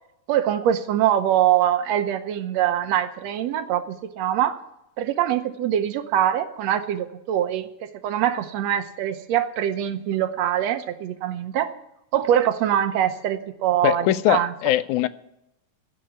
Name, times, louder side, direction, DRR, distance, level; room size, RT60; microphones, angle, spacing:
voice 1, 0.3-4.6 5.0-7.7 8.0-11.7 12.1-14.5, right 11 dB, 70° right, 1.8 m, -23 dB
voice 2, 13.8-15.1, left 14 dB, 85° left, 2.1 m, -21 dB
16.0 x 6.1 x 9.2 m
omnidirectional pair, 3.4 m